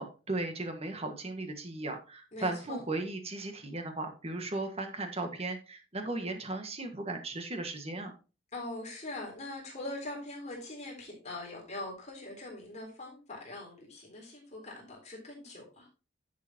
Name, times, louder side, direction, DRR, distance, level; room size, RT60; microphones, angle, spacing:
voice 1, 0.0-8.1, right 2 dB, 30° right, 5 dB, 1.6 m, -36 dB
voice 2, 2.3-2.8 8.5-15.9, left 2 dB, 35° left, -1 dB, 3.7 m, -42 dB
11.0 x 7.0 x 2.9 m, 0.32 s
head